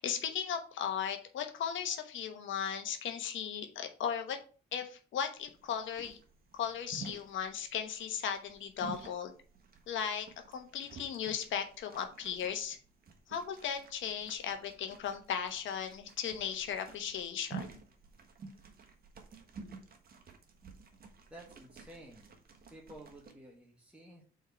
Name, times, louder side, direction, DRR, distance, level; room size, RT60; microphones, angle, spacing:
voice 1, 0.0-4.4 4.7-6.2 6.5-9.3 9.9-12.8 13.3-17.8, left 8 dB, 75° left, 6 dB, 1.1 m, -37 dB
sound 1, 5.4-23.3, right 5 dB, 50° right, 1.4 m, -51 dB
voice 2, 21.3-22.3 22.7-24.2, right 1 dB, 5° right, -2 dB, 1.5 m, -52 dB
4.6 x 4.5 x 5.7 m, 0.39 s
cardioid pair, 90°, 20 cm